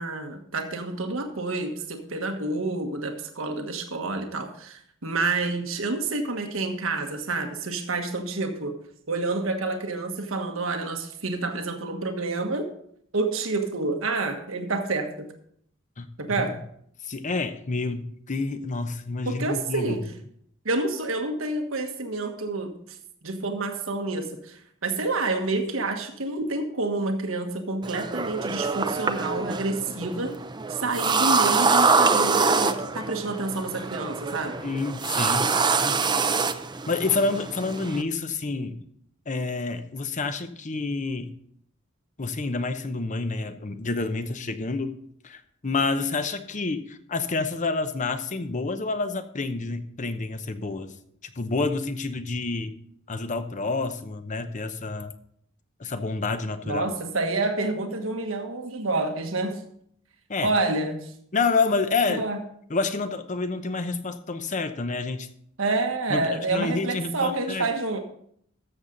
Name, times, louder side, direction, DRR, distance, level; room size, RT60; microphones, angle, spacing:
voice 1, 0.0-8.8 9.1-12.7 13.1-15.3 16.2-16.5 19.2-20.1 20.6-22.7 23.2-30.3 30.7-34.6 56.6-59.6 60.4-61.1 62.1-62.4 65.6-68.0, right 3 dB, 80° right, 5 dB, 1.4 m, -28 dB
voice 2, 17.0-20.0 34.6-36.0 36.3-36.5 36.9-38.8 39.3-41.3 42.2-44.9 45.2-50.9 51.4-52.7 53.1-55.1 55.8-56.8 60.3-60.5 61.3-62.2 62.7-65.3 66.1-66.2 66.5-67.7, left 3 dB, 35° left, 10 dB, 0.8 m, -28 dB
sound 1, 27.8-38.0, right 4 dB, 20° right, 0.5 m, -25 dB
13.5 x 7.3 x 3.9 m, 0.66 s
head